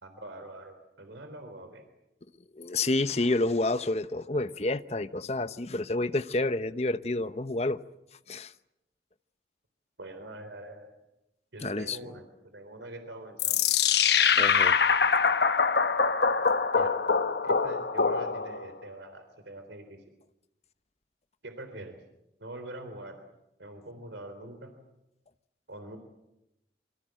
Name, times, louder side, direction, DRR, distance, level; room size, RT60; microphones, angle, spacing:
voice 1, 0.0-1.8 10.0-10.9 11.5-13.7 16.7-17.0 17.4-20.0 21.4-22.0 22.4-23.2 23.6-24.7 25.7-26.0, right 1 dB, 85° right, 3.6 m, -44 dB
voice 2, 2.6-7.8 8.3-8.5 11.6-12.0 14.4-14.8, left 2 dB, 35° left, 0.9 m, -29 dB
sound 1, 13.4-18.7, left 6 dB, 70° left, 1.0 m, -24 dB
27.0 x 24.5 x 7.7 m
head